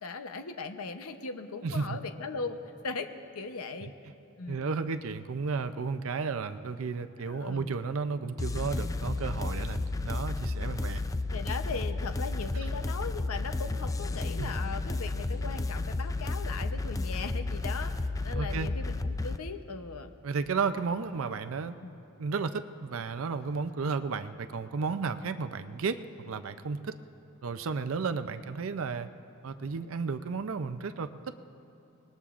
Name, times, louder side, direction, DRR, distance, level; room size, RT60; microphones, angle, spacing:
voice 1, 0.0-2.6 2.8-3.1 3.3-3.9 4.4-4.7 7.2-7.7 11.1-20.1 21.8-22.0, left 4 dB, 90° left, 7 dB, 0.8 m, -39 dB
voice 2, 1.6-2.0 4.5-11.0 14.4-14.5 18.3-18.7 20.2-21.8 22.2-27.0 27.4-29.1 29.4-31.3, right 5 dB, 65° right, 10 dB, 0.5 m, -33 dB
sound 1, 8.4-19.4, left 2 dB, 15° left, 0.3 m, -32 dB
25.0 x 20.0 x 2.5 m, 3.0 s
head